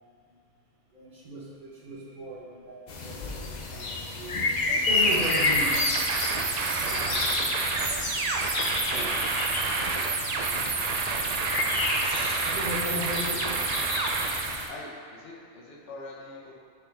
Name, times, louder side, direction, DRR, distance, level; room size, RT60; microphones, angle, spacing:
voice 1, 0.9-4.4 4.8-5.9 6.6-7.2 8.6-9.2 12.4-13.8, equal, 45° right, -4 dB, 1.1 m, -37 dB
sound 1, 2.9-14.7, left 3 dB, 45° left, 0.6 m, -30 dB
sound 2, 4.7-4.8 5.8-5.9 6.8-7.0 7.9-8.1 9.0-9.1 10.0-10.2 11.1-11.3 12.2-12.3, right 8 dB, 85° right, 1.0 m, -44 dB
sound 3, 4.8-14.7, right 4 dB, 65° right, 0.4 m, -29 dB
voice 2, 14.7-16.5, left 2 dB, 70° left, -3 dB, 1.2 m, -43 dB
7.9 x 4.3 x 3.4 m, 2.3 s
omnidirectional pair, 1.2 m